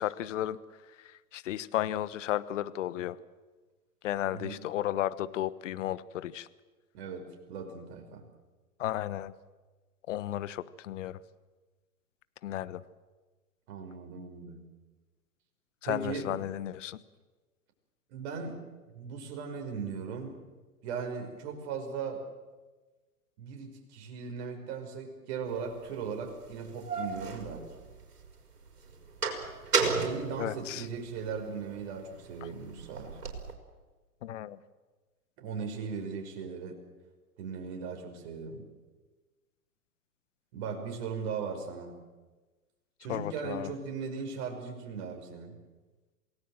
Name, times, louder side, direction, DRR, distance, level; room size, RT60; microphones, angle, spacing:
voice 1, 0.0-3.2 4.0-6.5 8.8-9.3 10.1-11.2 12.4-12.8 15.8-17.0 30.4-30.9 34.2-34.6 43.1-43.7, left 12 dB, 55° left, 17 dB, 1.2 m, -34 dB
voice 2, 6.9-8.2 13.7-14.7 15.8-16.4 18.1-18.6 18.9-20.4 20.8-22.2 23.4-27.7 29.9-33.2 35.4-36.8 37.4-38.7 40.5-42.0 43.0-45.6, right 5 dB, 45° right, 3 dB, 5.4 m, -38 dB
sound 1, 25.7-25.8 26.5-28.3 28.7-31.3 31.7-33.5, right 4 dB, 85° right, 4.7 m, -33 dB
27.5 x 18.5 x 7.7 m, 1.2 s
hypercardioid pair, 120°, 45 cm